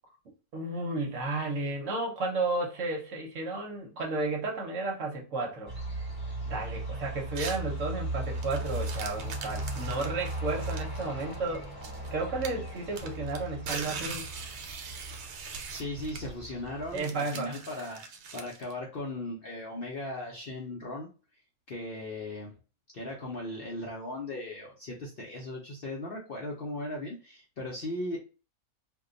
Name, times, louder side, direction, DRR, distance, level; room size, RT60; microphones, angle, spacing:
voice 1, 0.5-5.7 6.4-11.6 12.1-14.3 16.9-17.6, right 2 dB, 60° right, 1.1 m, -33 dB
sound 1, 5.7-17.0, right 1 dB, 20° right, 1.4 m, -37 dB
sound 2, 7.4-7.7 8.3-12.1 12.4-18.7, right 5 dB, 85° right, 1.2 m, -41 dB
voice 2, 15.7-18.0 18.3-21.1 21.7-22.5 22.9-28.2, left 1 dB, 55° left, 0.7 m, -37 dB
2.6 x 2.2 x 3.7 m
omnidirectional pair, 1.6 m